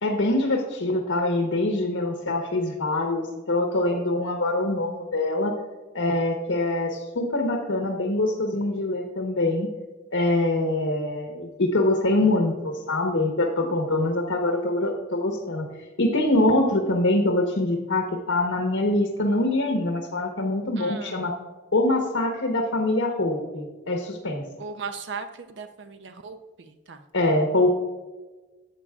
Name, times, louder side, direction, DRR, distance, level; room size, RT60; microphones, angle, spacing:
voice 1, 0.0-5.5 5.9-9.7 10.1-15.7 16.0-21.3 21.7-24.4 27.1-27.7, left 2 dB, 85° left, 2 dB, 1.1 m, -24 dB
voice 2, 20.8-21.2 24.6-25.3 25.6-26.4 26.9-27.0, right 5 dB, 60° right, 8 dB, 0.6 m, -36 dB
12.0 x 8.5 x 2.4 m, 1.2 s
head